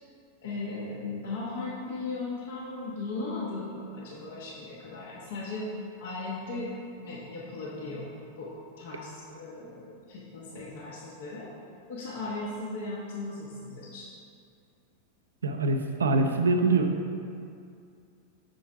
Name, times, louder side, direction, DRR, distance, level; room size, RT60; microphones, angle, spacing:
voice 1, 0.4-5.7 6.0-8.1 8.4-8.5 8.8-11.5 11.9-14.1, left 3 dB, 55° left, -7 dB, 1.2 m, -37 dB
voice 2, 15.4-16.9, right 3 dB, 70° right, 6 dB, 0.5 m, -24 dB
6.2 x 3.8 x 5.4 m, 2.4 s
figure-of-eight pair, 90°, 0 cm